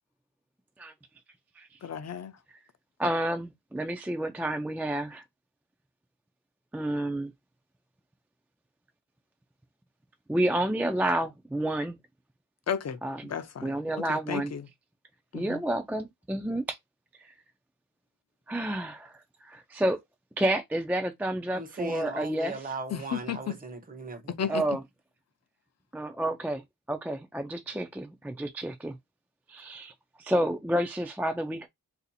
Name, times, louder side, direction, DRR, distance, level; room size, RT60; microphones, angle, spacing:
voice 1, 1.8-2.3 12.7-13.0 13.3-14.7 15.3-15.6 22.9-23.5 24.3-24.8, left 8 dB, 45° left, 0.5 m, -34 dB
voice 2, 3.0-5.2 6.7-7.3 10.3-12.0 13.0-13.2 13.6-14.5 15.3-16.8 18.5-19.1 19.4-20.0 20.4-22.5 24.5-24.8 25.9-26.6 26.9-29.0 29.5-29.9 30.2-31.7, right 1 dB, 5° right, 0.3 m, -30 dB
voice 3, 21.5-24.7, right 3 dB, 25° right, 0.7 m, -38 dB
2.6 x 2.4 x 4.0 m
wide cardioid pair, 110°, 36 cm